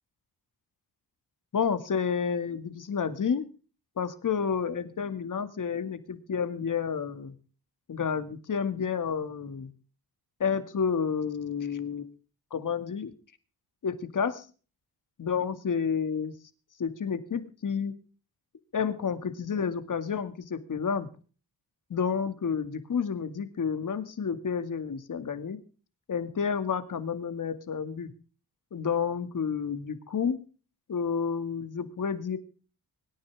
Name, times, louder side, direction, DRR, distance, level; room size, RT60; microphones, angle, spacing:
voice 1, 1.5-3.5 4.0-7.3 7.9-9.7 10.4-12.1 12.5-13.1 13.8-14.5 15.2-16.3 16.8-17.9 18.7-21.1 21.9-25.6 26.1-28.1 28.7-30.4 30.9-32.4, left 6 dB, 55° left, 11 dB, 2.1 m, -30 dB
24.5 x 9.8 x 3.5 m, 0.37 s
cardioid pair, 70°, 38 cm